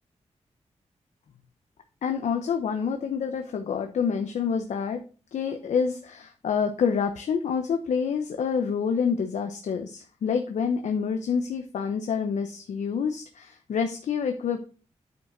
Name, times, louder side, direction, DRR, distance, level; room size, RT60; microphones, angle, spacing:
voice 1, 2.0-5.0 5.3-14.6, left 6 dB, 85° left, 6 dB, 0.8 m, -27 dB
9.1 x 5.2 x 3.8 m, 0.36 s
wide cardioid pair, 120°, 12 cm